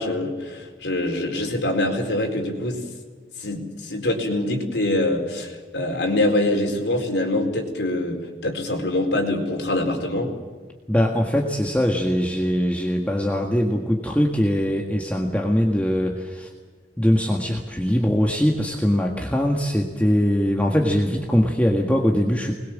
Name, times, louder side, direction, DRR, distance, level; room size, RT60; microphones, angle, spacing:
voice 1, 0.0-2.8 3.4-10.3, left 1 dB, 75° left, 2 dB, 4.4 m, -24 dB
voice 2, 10.9-16.5 17.0-22.5, equal, 10° left, 0 dB, 1.7 m, -21 dB
25.0 x 21.0 x 7.5 m, 1.5 s
head